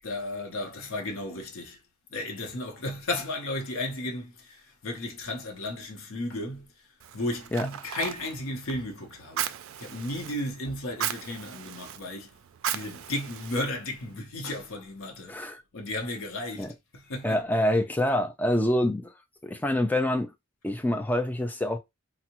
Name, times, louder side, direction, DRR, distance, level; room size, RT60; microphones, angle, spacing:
voice 1, 0.0-1.8 2.1-6.9 7.1-9.5 9.8-12.4 12.7-15.5 15.7-17.4, left 1 dB, 80° left, 0.7 m, -34 dB
Fire, 7.0-14.2, right 10 dB, 75° right, 0.3 m, -37 dB
voice 2, 15.3-15.6 16.6-16.7 17.2-19.1 19.4-20.3 20.6-21.8, left 1 dB, 10° left, 0.3 m, -26 dB
3.4 x 2.0 x 2.9 m
head